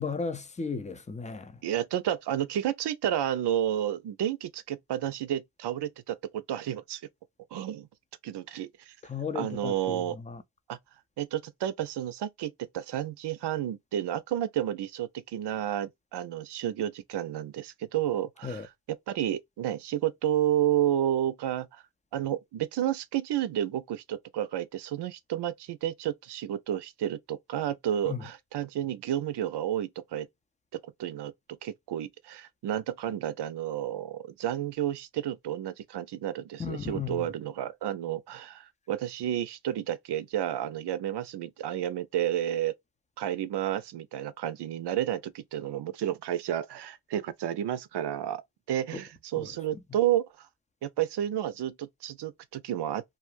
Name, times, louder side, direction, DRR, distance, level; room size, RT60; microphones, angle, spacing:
voice 1, 0.0-1.6 9.0-10.4 18.4-18.7 28.1-28.3 36.6-37.3 48.9-49.0 49.4-49.5, left 5 dB, 15° left, 0.6 m, -35 dB
voice 2, 1.6-7.0 7.5-7.9 8.2-8.9 9.3-10.2 10.7-10.8 11.2-21.8 22.1-30.3 30.7-31.3 31.6-42.7 43.2-48.4 48.7-50.5 50.8-53.0, right 11 dB, 60° right, 0.6 m, -31 dB
2.5 x 2.0 x 3.2 m
supercardioid pair, 50°, 47 cm